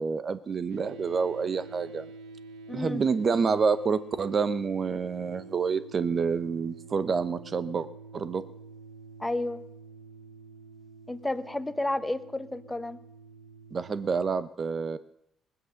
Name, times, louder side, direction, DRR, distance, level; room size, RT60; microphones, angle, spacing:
voice 1, 0.0-2.0 2.7-7.9 8.1-8.4 13.7-15.0, right 5 dB, 45° right, 14 dB, 0.9 m, -28 dB
sound 1, 0.7-14.3, right 3 dB, 80° right, 1.0 m, -48 dB
voice 2, 2.7-3.0 9.2-9.6 11.1-13.0, left 2 dB, 10° left, 13 dB, 0.9 m, -31 dB
19.5 x 8.0 x 6.5 m, 0.79 s
supercardioid pair, 60°, 0 cm